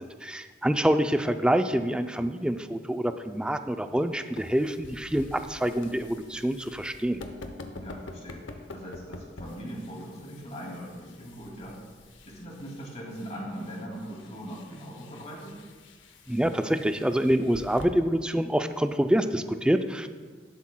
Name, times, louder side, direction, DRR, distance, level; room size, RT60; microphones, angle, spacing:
voice 1, 0.0-7.2 16.3-20.1, right 1 dB, 5° right, 8 dB, 0.3 m, -26 dB
sound 1, 3.9-17.8, left 2 dB, 75° left, 0.7 m, -47 dB
voice 2, 7.7-11.8 12.2-15.6, equal, 35° left, -3 dB, 2.3 m, -40 dB
11.5 x 11.0 x 2.2 m, 1.5 s
head